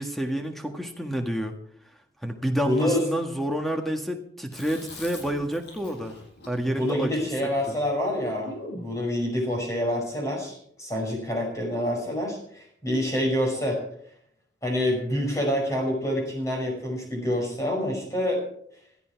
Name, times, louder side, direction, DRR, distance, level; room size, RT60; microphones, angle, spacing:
voice 1, 0.0-1.5 2.2-6.2 6.5-7.3 7.7-7.8, equal, ahead, 4 dB, 1.8 m, -29 dB
voice 2, 2.6-3.0 6.7-13.8 14.6-18.4, left 1 dB, 15° left, 0 dB, 5.6 m, -27 dB
Chewing mastication, 4.5-8.9, left 1 dB, 70° left, 7.9 m, -43 dB
17.0 x 13.5 x 4.7 m, 0.66 s
head